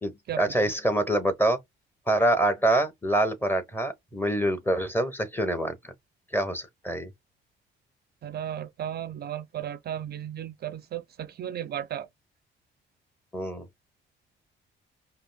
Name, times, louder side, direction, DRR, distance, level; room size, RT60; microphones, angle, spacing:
voice 1, 0.0-1.6 2.1-5.8 6.3-7.1 13.3-13.7, right 1 dB, 10° left, 1.1 m, -25 dB
voice 2, 8.2-12.1, right 10 dB, 55° right, 0.4 m, -35 dB
5.1 x 2.0 x 2.3 m
cardioid pair, 90°, 20 cm